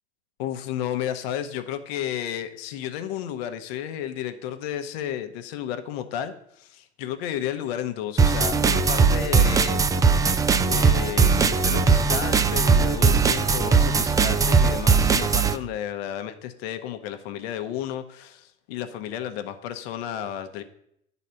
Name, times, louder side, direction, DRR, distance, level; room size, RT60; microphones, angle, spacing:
voice 1, 0.4-9.8 10.7-20.6, left 10 dB, 60° left, 9 dB, 1.0 m, -32 dB
sound 1, 8.2-15.6, right 5 dB, 10° right, 0.3 m, -19 dB
10.5 x 4.1 x 5.6 m, 0.74 s
hypercardioid pair, 85°, 34 cm